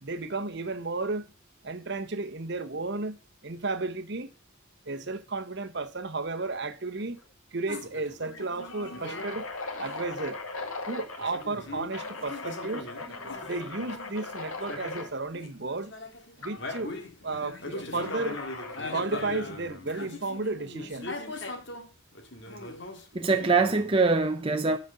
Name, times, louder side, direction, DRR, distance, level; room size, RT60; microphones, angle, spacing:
voice 1, 0.0-1.3 1.6-3.2 3.4-4.3 4.8-7.2 7.5-9.5 9.8-10.4 10.9-12.9 13.4-15.9 16.4-17.0 17.2-18.4 18.9-21.1, right 3 dB, 55° right, 1.0 m, -33 dB
sound 1, 7.0-7.2 7.5-7.6 8.2-11.5 11.9-15.1 16.4-16.8 18.0-18.9, left 3 dB, 90° left, 2.0 m, -39 dB
sound 2, 7.7-9.4 9.8-10.1 11.2-14.1 14.6-15.6 15.9-21.9 22.1-24.2, left 2 dB, 55° left, 1.9 m, -40 dB
voice 2, 23.1-24.8, right 4 dB, 25° right, 0.6 m, -24 dB
12.5 x 5.2 x 5.1 m
head